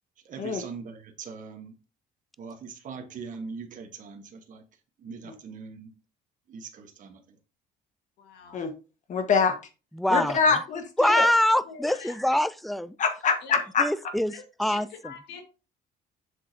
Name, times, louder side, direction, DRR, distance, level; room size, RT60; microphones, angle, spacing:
voice 1, 0.2-1.7 2.4-4.6 5.0-5.9 6.5-7.4, right 5 dB, 50° right, 1.3 m, -41 dB
voice 2, 8.2-8.6 11.1-11.3 11.6-12.4 13.4-13.6 14.3-15.4, left 6 dB, 85° left, 1.8 m, -45 dB
voice 3, 9.1-9.5 10.1-11.3 13.0-13.8, left 5 dB, 45° left, 1.5 m, -24 dB
voice 4, 10.0-10.4 11.0-13.0 13.8-14.3 14.6-15.1, left 1 dB, ahead, 0.4 m, -24 dB
7.5 x 6.2 x 2.8 m
cardioid pair, 110°, 17 cm